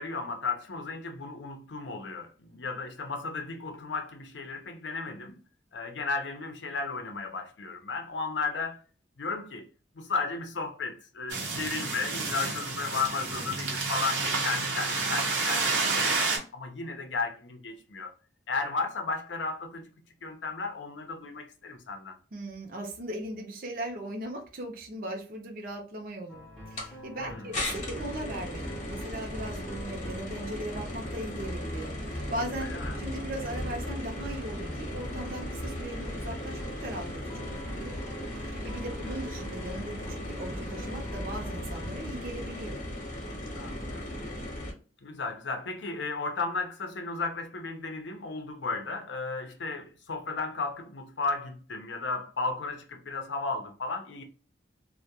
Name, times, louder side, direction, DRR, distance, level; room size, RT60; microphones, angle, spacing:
voice 1, 0.0-5.4 5.7-8.8 9.2-9.7 9.9-18.1 18.5-19.9 20.2-22.2 27.2-27.5 32.6-33.0 39.0-39.2 43.6-44.1 45.0-54.2, left 4 dB, 75° left, 0.6 m, -34 dB
sound 1, 11.3-16.4, right 3 dB, 85° right, 0.8 m, -29 dB
voice 2, 22.3-32.7 33.0-38.0 38.4-42.8, right 1 dB, 50° right, 0.5 m, -38 dB
sound 2, 26.3-41.9, equal, 5° left, 0.6 m, -42 dB
sound 3, 26.8-26.9 27.5-44.7, left 1 dB, 40° left, 0.8 m, -37 dB
2.2 x 2.1 x 2.8 m
head